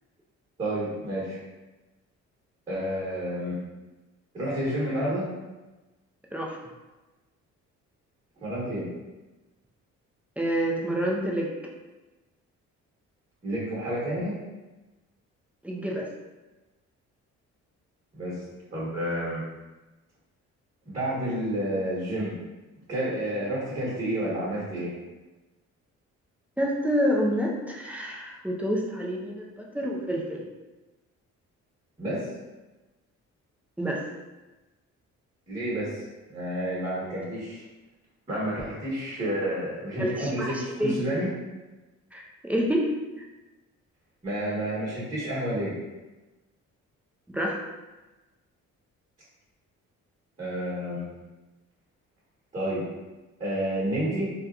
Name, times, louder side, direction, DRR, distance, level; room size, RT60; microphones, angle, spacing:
voice 1, 0.6-1.4 2.7-3.6 4.3-5.3 8.4-8.9 13.4-14.4 18.2-18.4 18.7-19.4 20.8-22.4 22.9-24.9 32.0-32.3 35.5-36.0 36.3-37.6 38.3-41.3 44.2-45.7 50.4-51.1 52.5-52.8 53.4-54.3, right 1 dB, 25° right, -7 dB, 1.3 m, -30 dB
voice 2, 10.4-11.5 15.6-16.1 26.6-30.4 33.8-34.0 40.0-40.9 42.1-42.9 43.2-43.3 47.3-47.6, equal, 5° right, -2 dB, 0.4 m, -28 dB
2.7 x 2.3 x 2.4 m, 1.1 s
cardioid pair, 90°, 30 cm